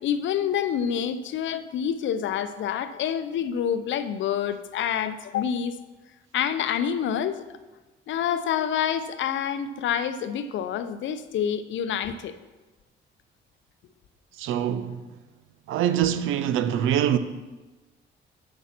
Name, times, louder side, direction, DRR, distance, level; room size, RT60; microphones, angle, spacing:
voice 1, 0.0-5.8 6.3-7.4 8.1-12.3, left 9 dB, 75° left, 0.6 m, -27 dB
voice 2, 14.4-15.0 15.7-17.2, right 10 dB, 85° right, 0.6 m, -24 dB
8.3 x 5.2 x 5.9 m
cardioid pair, 90°, 20 cm